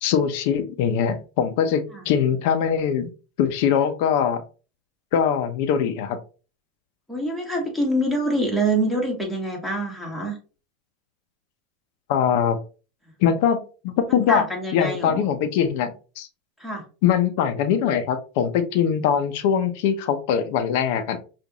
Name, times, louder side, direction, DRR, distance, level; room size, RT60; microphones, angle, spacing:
voice 1, 0.0-3.1 3.4-4.4 5.1-6.2 12.1-12.6 13.2-14.4 14.7-16.3 17.0-21.2, left 8 dB, 65° left, 9 dB, 0.7 m, -22 dB
voice 2, 7.1-10.4 14.1-15.2 16.6-16.8, right 1 dB, 5° left, -1 dB, 1.8 m, -25 dB
5.2 x 2.6 x 3.0 m, 0.35 s
hypercardioid pair, 110°, 0 cm